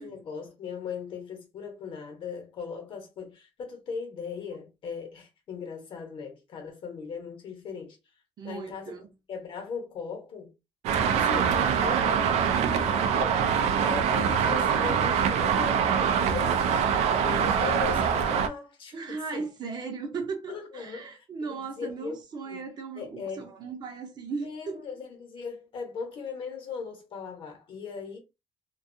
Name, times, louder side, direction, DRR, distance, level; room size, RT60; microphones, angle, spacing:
voice 1, 0.0-8.0 8.4-9.0 9.3-10.5 11.1-13.4 13.8-16.7 17.2-19.5 20.5-22.2 22.4-22.6 22.9-23.5 24.4-28.2, left 5 dB, 55° left, 0.9 m, -38 dB
voice 2, 8.4-9.1 18.9-24.8, right 4 dB, 40° right, 0.7 m, -37 dB
Traffic noise roadway noise, 10.8-18.5, right 7 dB, 90° right, 0.4 m, -24 dB
2.5 x 2.3 x 2.5 m
cardioid pair, 165°, 11 cm